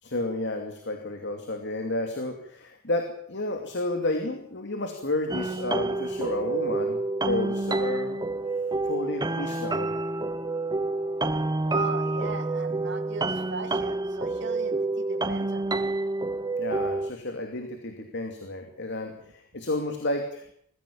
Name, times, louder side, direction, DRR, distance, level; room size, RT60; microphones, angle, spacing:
voice 1, 0.0-8.2 8.8-10.0 16.6-20.4, left 2 dB, 55° left, 5 dB, 2.6 m, -31 dB
sound 1, 5.3-17.1, right 2 dB, 20° right, 0.9 m, -28 dB
voice 2, 11.6-15.8, right 3 dB, 60° right, 6 dB, 2.3 m, -38 dB
22.0 x 15.5 x 8.7 m, 0.66 s
head